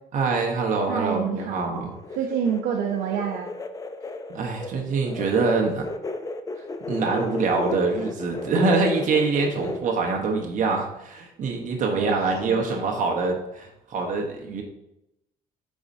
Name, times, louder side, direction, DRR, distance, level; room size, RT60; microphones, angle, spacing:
voice 1, 0.1-1.9 4.3-5.9 6.9-14.6, right 4 dB, 50° right, 1 dB, 1.1 m, -24 dB
voice 2, 0.9-1.9 2.2-3.5 11.9-12.6, right 8 dB, 90° right, 2 dB, 0.7 m, -28 dB
sound 1, 1.0-9.8, left 3 dB, 20° left, 0.5 m, -34 dB
8.5 x 4.2 x 2.7 m, 0.86 s
cardioid pair, 110°, 17 cm